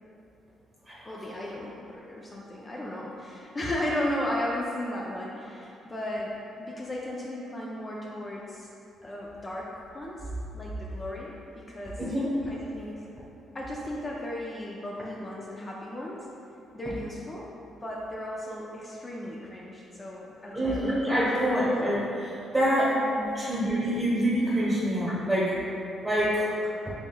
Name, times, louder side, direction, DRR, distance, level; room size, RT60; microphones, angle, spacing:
voice 1, 1.0-8.7 9.0-12.0 12.5-13.0 13.5-16.3 16.7-17.5 17.8-21.2 22.8-23.4 24.6-24.7, left 1 dB, 25° left, -4 dB, 0.4 m, -35 dB
voice 2, 12.0-12.3 20.5-23.0 23.3-25.6 26.0-26.5, equal, 10° right, -9 dB, 1.0 m, -26 dB
5.2 x 3.3 x 2.2 m, 2.8 s
cardioid pair, 90°, 0 cm